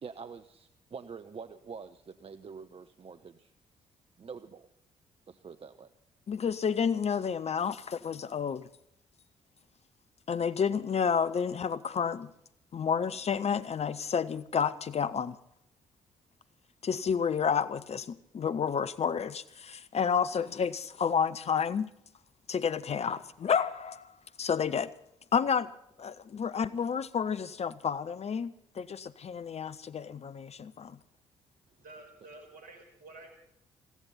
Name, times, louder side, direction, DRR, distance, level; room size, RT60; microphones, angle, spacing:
voice 1, 0.0-3.5 4.2-4.7 5.3-5.9, right 5 dB, 40° right, 0.9 m, -46 dB
voice 2, 6.3-8.7 10.3-12.3 12.7-15.4 16.8-21.9 22.5-24.1 24.4-24.9 25.3-25.7 26.0-31.0, left 7 dB, 40° left, 0.9 m, -30 dB
voice 3, 31.7-33.4, right 2 dB, 65° right, 5.0 m, -50 dB
21.0 x 16.0 x 4.2 m
figure-of-eight pair, 40°, 16 cm